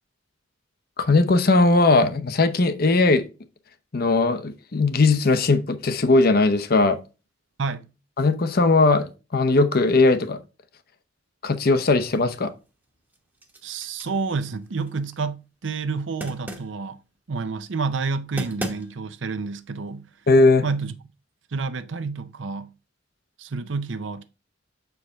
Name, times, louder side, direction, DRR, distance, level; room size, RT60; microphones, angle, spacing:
voice 1, 1.0-3.2 3.9-7.0 8.2-10.4 11.4-12.5 20.3-20.6, left 3 dB, 55° left, 0.7 m, -19 dB
sound 1, 11.9-12.6 12.9-15.2 16.2-16.8 18.0-18.1 18.4-19.2, right 1 dB, 10° right, 0.9 m, -37 dB
voice 2, 13.6-17.0 17.3-20.1 20.6-20.9 21.5-22.7 23.4-24.2, right 4 dB, 80° right, 0.6 m, -29 dB
6.6 x 4.7 x 3.5 m
head